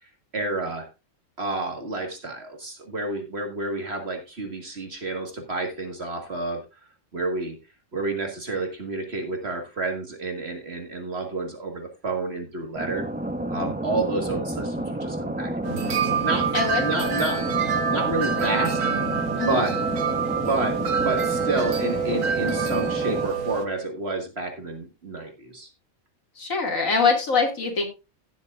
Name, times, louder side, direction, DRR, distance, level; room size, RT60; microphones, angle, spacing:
voice 1, 0.3-0.9 1.4-6.6 7.1-7.6 7.9-13.0 13.5-15.5 15.8-16.5 16.8-17.4 17.9-18.8 19.4-19.7 20.3-20.8 21.0-25.7, right 3 dB, 50° right, 3 dB, 1.9 m, -29 dB
sound 1, 12.7-23.3, right 1 dB, 10° right, 0.7 m, -30 dB
sound 2, 15.6-23.7, right 6 dB, 85° right, 1.5 m, -26 dB
voice 2, 16.5-16.9 19.4-19.6 26.4-27.8, left 4 dB, 90° left, 1 dB, 2.6 m, -23 dB
17.5 x 7.2 x 2.4 m, 0.28 s
omnidirectional pair, 1.4 m